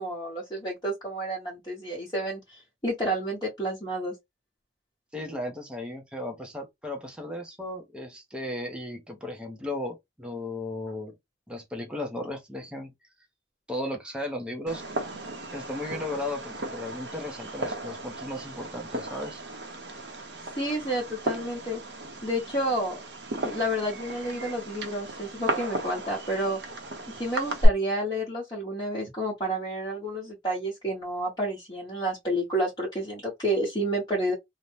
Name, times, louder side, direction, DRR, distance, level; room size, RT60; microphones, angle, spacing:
voice 1, 0.0-4.1 20.6-21.8 22.2-23.0 23.4-26.6 27.2-34.3, right 1 dB, 25° left, 1.0 m, -30 dB
voice 2, 5.1-11.1 11.5-12.9 13.7-14.8 15.5-19.4, left 1 dB, 5° right, 0.7 m, -35 dB
Fireworks, 14.7-27.7, right 1 dB, 65° right, 0.8 m, -34 dB
2.6 x 2.1 x 3.2 m
head